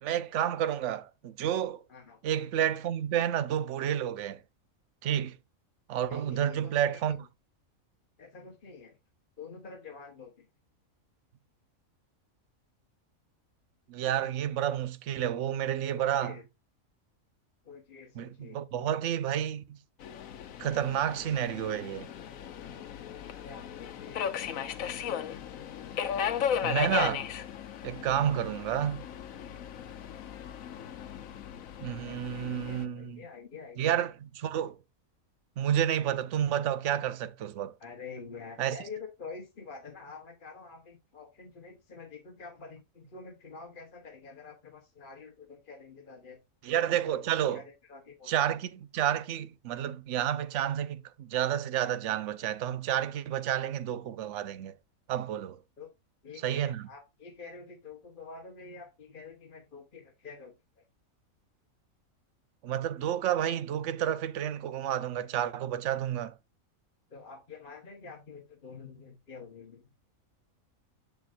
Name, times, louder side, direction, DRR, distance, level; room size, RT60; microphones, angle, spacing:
voice 1, 0.0-1.8 2.2-4.4 5.0-5.4 5.9-7.2 13.9-16.3 18.1-19.8 20.6-22.1 26.6-27.3 27.8-29.0 31.8-33.2 33.8-34.8 35.6-37.7 38.6-38.8 46.6-47.6 48.3-54.7 55.1-55.6 56.4-56.9 62.6-66.3, right 10 dB, 65° right, 1.0 m, -30 dB
voice 2, 6.1-7.2 8.2-9.0 9.4-10.5 15.9-16.4 17.6-18.6 23.4-24.7 32.4-34.0 37.8-46.4 46.7-47.2 47.5-48.3 55.8-55.9 56.2-60.8 67.1-69.9, left 5 dB, 40° left, 1.2 m, -47 dB
Subway metro underground, 20.0-32.8, left 8 dB, 75° left, 1.2 m, -36 dB
7.8 x 7.1 x 2.5 m
omnidirectional pair, 1.4 m